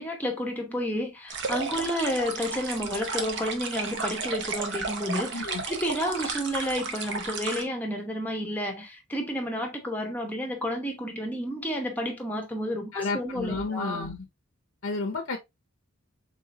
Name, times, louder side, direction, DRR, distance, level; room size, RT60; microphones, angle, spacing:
voice 1, 0.0-14.1, equal, 10° left, 0.9 m, -31 dB
sound 1, 1.3-7.6, right 4 dB, 55° right, 0.7 m, -33 dB
voice 2, 12.9-14.3 14.8-15.4, left 3 dB, 65° left, 0.7 m, -31 dB
3.8 x 3.7 x 2.6 m
head